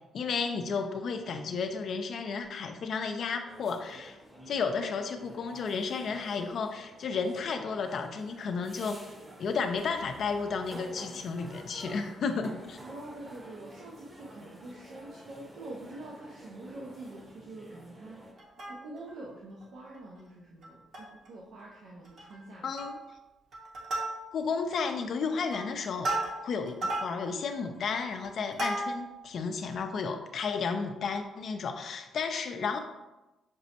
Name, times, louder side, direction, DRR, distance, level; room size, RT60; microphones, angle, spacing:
voice 1, 0.1-4.2 4.5-9.0 9.4-12.8 22.6-23.0 24.3-26.1 26.4-32.8, left 5 dB, 60° left, 6 dB, 0.3 m, -32 dB
sound 1, 3.5-18.3, right 1 dB, 25° right, 0.8 m, -50 dB
voice 2, 12.8-18.2 18.6-22.8, right 2 dB, 70° right, -4 dB, 0.5 m, -45 dB
Plucked string instrument, 18.4-19.2 19.6-19.7 19.9-20.2 20.6-21.3 21.6-21.7 22.0-22.4 22.8-23.1 23.5-24.6 25.1-29.2 29.7-29.8, right 2 dB, 55° right, 1.0 m, -35 dB
5.9 x 2.0 x 2.8 m, 1.0 s
cardioid pair, 90°, 0 cm